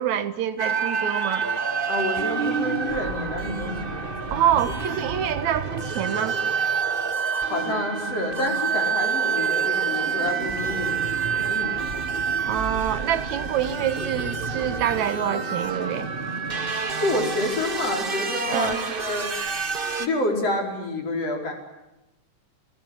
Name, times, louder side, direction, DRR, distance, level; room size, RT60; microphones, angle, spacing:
voice 1, 0.0-1.5 4.3-6.4 12.5-16.1 18.5-18.8, right 10 dB, 75° right, 2.5 m, -26 dB
sound 1, 0.6-20.1, right 5 dB, 35° right, 0.8 m, -27 dB
voice 2, 1.9-4.3 7.4-11.9 17.0-19.3 20.0-21.5, left 2 dB, 55° left, 5.9 m, -28 dB
28.5 x 20.5 x 9.7 m
omnidirectional pair, 3.4 m